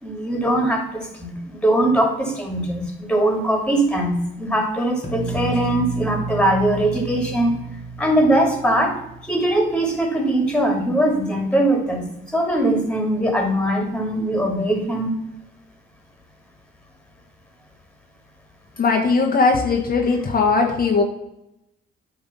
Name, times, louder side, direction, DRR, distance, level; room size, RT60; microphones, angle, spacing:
voice 1, 0.0-7.6 8.0-8.9 9.2-15.1, right 1 dB, 5° left, 3 dB, 2.2 m, -21 dB
sound 1, 5.0-9.9, right 4 dB, 30° left, 1.6 m, -31 dB
voice 2, 18.8-21.0, left 4 dB, 50° left, 2 dB, 1.2 m, -19 dB
9.0 x 3.5 x 6.9 m, 0.84 s
cardioid pair, 90°, 20 cm